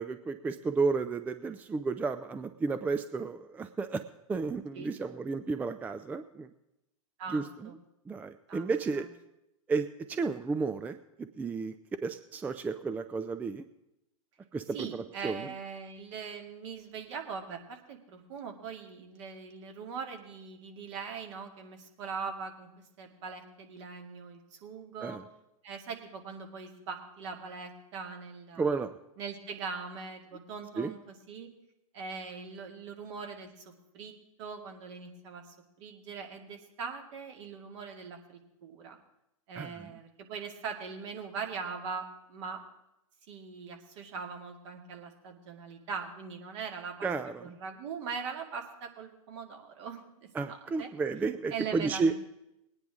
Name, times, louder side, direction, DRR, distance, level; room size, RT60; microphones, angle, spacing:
voice 1, 0.0-4.0 4.3-6.5 7.3-7.7 8.1-9.1 9.7-11.7 12.0-13.7 14.5-15.5 25.0-25.2 28.6-28.9 30.8-30.9 39.6-39.9 47.0-47.6 50.3-52.1, right 4 dB, 10° right, 10 dB, 0.4 m, -32 dB
voice 2, 7.2-7.7 8.5-8.7 14.7-22.7 23.0-25.2 25.6-28.7 29.2-31.5 31.9-34.1 34.4-39.0 39.5-42.6 43.3-47.1 47.4-50.9 51.5-52.1, right 5 dB, 55° right, 3 dB, 2.3 m, -41 dB
20.0 x 9.5 x 3.6 m, 0.87 s
hypercardioid pair, 120°, 18 cm